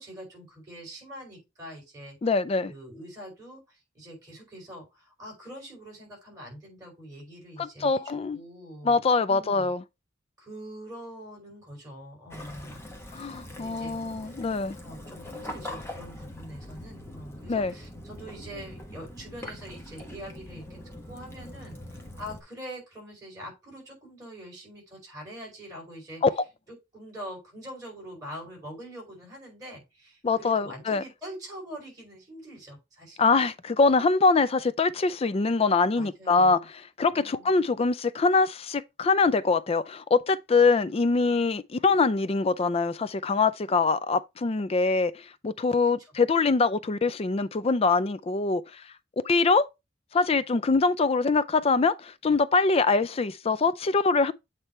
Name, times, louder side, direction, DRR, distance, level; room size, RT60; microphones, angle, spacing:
voice 1, 0.0-2.2 2.7-9.0 9.3-9.7 10.4-12.8 13.1-14.0 14.2-14.5 14.8-20.8 21.1-26.2 26.7-33.2 35.9-36.7 37.1-37.6 46.0-46.1, equal, 20° right, 4.8 m, -44 dB
voice 2, 2.2-2.7 7.6-8.4 8.8-9.8 13.1-14.8 17.5-17.7 26.2-26.4 30.2-31.0 33.2-36.6 37.0-45.1 45.4-48.8 49.2-49.7 50.1-54.3, left 4 dB, 30° left, 0.4 m, -24 dB
Waves surf / Splash splatter / Trickle dribble, 12.3-22.4, left 1 dB, 15° left, 1.2 m, -42 dB
8.2 x 3.3 x 4.3 m
head